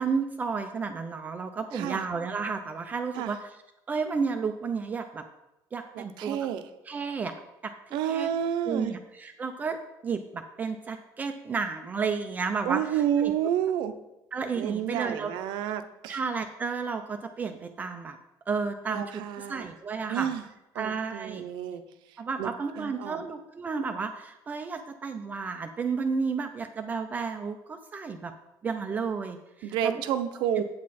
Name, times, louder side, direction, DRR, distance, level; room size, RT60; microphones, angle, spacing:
voice 1, 0.0-3.5 3.9-5.2 5.7-6.4 6.9-7.3 7.6-8.3 8.7-9.8 10.0-13.3 14.3-15.3 16.1-18.2 18.5-20.3 20.8-21.5 22.2-28.3 28.6-30.0 30.6-30.7, right 5 dB, 20° right, 6 dB, 0.4 m, -32 dB
voice 2, 6.0-6.6 7.9-8.9 12.6-13.9 14.5-16.2 18.9-19.7 20.1-20.4 20.7-21.8 22.4-22.5 22.8-23.3 29.6-30.6, right 9 dB, 65° right, 9 dB, 0.7 m, -30 dB
8.5 x 8.4 x 4.2 m, 0.94 s
cardioid pair, 180°, 9 cm